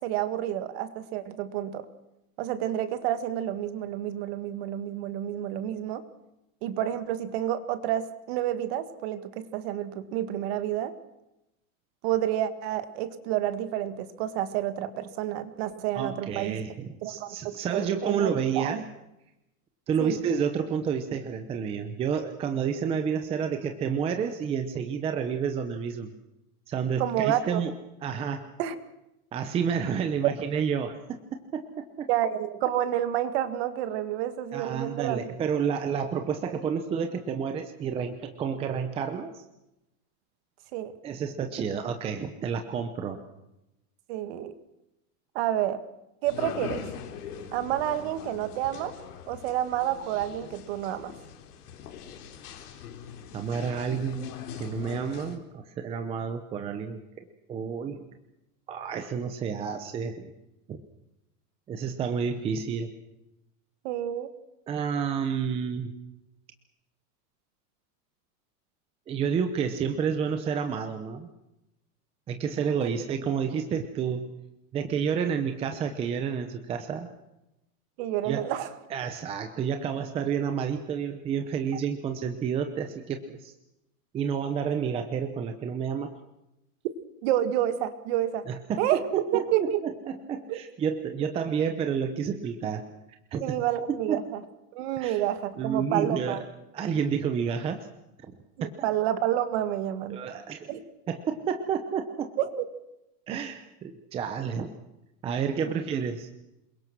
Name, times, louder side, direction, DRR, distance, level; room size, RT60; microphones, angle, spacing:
voice 1, 0.0-1.9 2.4-6.0 6.6-10.9 12.0-16.6 17.0-18.8 20.0-20.2 27.0-27.6 28.6-28.8 30.2-30.3 32.1-35.2 40.7-40.9 44.1-44.5 45.4-45.8 46.2-46.9 47.5-48.9 49.3-51.1 63.8-64.3 72.8-72.9 78.0-78.7 87.2-88.4 88.8-89.0 89.3-89.8 90.5-90.6 93.4-94.4 94.7-96.4 98.6-100.2 100.7-100.8 102.4-102.6 105.6-105.7, right 12 dB, 45° right, 11 dB, 1.9 m, -29 dB
voice 2, 15.9-18.8 19.9-26.1 26.7-27.7 28.0-28.4 29.3-32.1 34.5-39.4 41.0-43.2 53.3-54.3 54.6-57.0 57.5-58.0 58.7-60.3 60.7-60.8 61.7-62.9 64.7-65.9 69.1-71.3 72.3-74.3 74.7-77.1 78.2-78.4 78.9-83.5 84.1-86.1 88.5-89.5 89.8-92.8 93.3-93.6 94.1-94.2 95.0-95.2 95.6-96.4 96.7-97.8 98.3-98.4 98.6-98.7 100.1-100.7 101.1-102.3 103.3-104.7 105.2-106.3, right 7 dB, 15° right, 7 dB, 0.8 m, -30 dB
sound 1, 46.2-55.4, left 8 dB, 85° left, 4.0 m, -41 dB
27.0 x 22.5 x 6.2 m, 0.91 s
supercardioid pair, 170°, 45 cm